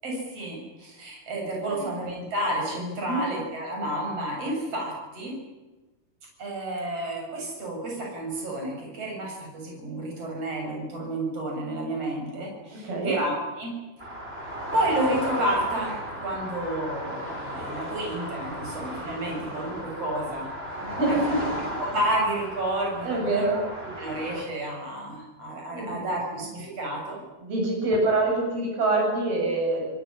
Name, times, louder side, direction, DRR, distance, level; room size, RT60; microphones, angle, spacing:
voice 1, 0.0-5.3 6.4-13.7 14.7-20.5 21.1-21.2 21.8-23.6 24.0-27.2, right 1 dB, 40° right, -1 dB, 8.8 m, -30 dB
sound 1, 14.0-24.4, equal, 15° right, 6.5 m, -35 dB
voice 2, 20.8-21.4 23.0-23.6 25.7-26.1 27.4-29.9, right 2 dB, 85° right, 0 dB, 10.0 m, -25 dB
28.0 x 17.5 x 9.9 m, 1.2 s
omnidirectional pair, 4.2 m